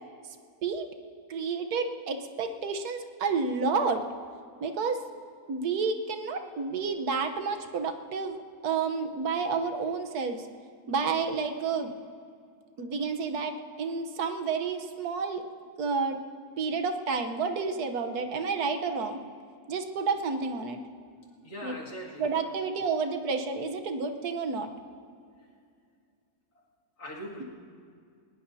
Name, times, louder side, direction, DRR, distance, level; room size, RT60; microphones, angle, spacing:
voice 1, 1.3-4.0 4.6-5.0 5.5-8.4 8.6-10.5 10.9-11.9 12.8-15.4 15.8-16.2 16.6-19.2 19.7-20.8 21.6-21.8 22.2-24.7, right 5 dB, 75° right, 6 dB, 1.5 m, -30 dB
voice 2, 21.4-22.4 27.0-27.4, equal, 75° left, -4 dB, 2.9 m, -41 dB
21.5 x 19.0 x 2.7 m, 2.3 s
omnidirectional pair, 1.6 m